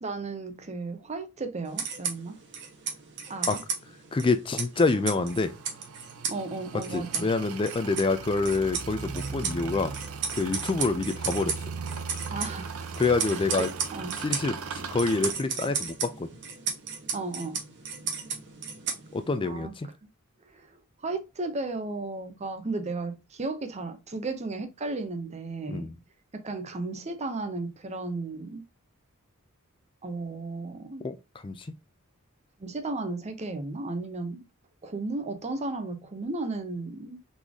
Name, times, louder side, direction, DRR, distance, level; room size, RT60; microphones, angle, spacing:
voice 1, 0.0-2.4 3.3-3.6 6.3-7.3 12.3-12.8 13.3-14.2 17.1-17.6 19.4-19.7 20.0-20.1 20.5-20.7 21.0-25.9 26.3-28.6 30.0-31.0 32.6-34.4 34.8-37.2, right 3 dB, 30° right, 0.6 m, -34 dB
sound 1, 1.7-19.4, right 6 dB, 55° right, 1.3 m, -36 dB
voice 2, 4.1-5.5 6.9-9.9 10.3-11.6 13.0-13.7 14.2-16.3 19.1-19.9 25.7-25.9 31.0-31.2 31.4-31.7, left 3 dB, 25° left, 0.4 m, -27 dB
sound 2, 4.7-15.3, right 5 dB, 75° right, 0.6 m, -38 dB
4.1 x 3.2 x 3.5 m
head